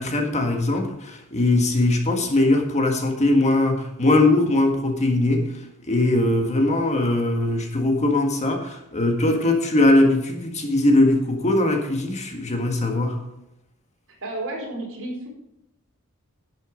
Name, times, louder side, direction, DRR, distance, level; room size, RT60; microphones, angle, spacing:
voice 1, 0.0-13.2, left 2 dB, 30° left, 3 dB, 1.6 m, -21 dB
voice 2, 14.2-15.3, right 2 dB, 65° right, -2 dB, 4.5 m, -31 dB
11.0 x 8.3 x 5.1 m, 0.84 s
head